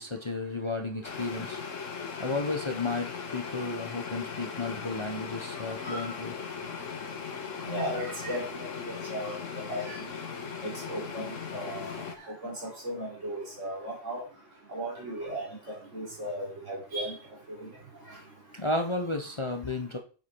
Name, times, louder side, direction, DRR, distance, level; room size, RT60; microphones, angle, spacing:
voice 1, 0.0-1.6 2.2-6.3 18.5-20.0, left 2 dB, 25° left, 5 dB, 0.9 m, -33 dB
sound 1, 1.0-12.2, left 6 dB, 80° left, 1.7 m, -38 dB
voice 2, 7.7-9.4 9.7-10.0 10.6-11.9 12.4-14.2 14.7-17.2 17.5-17.7, equal, 70° right, -3 dB, 4.5 m, -36 dB
7.8 x 7.7 x 4.6 m, 0.38 s
omnidirectional pair, 1.3 m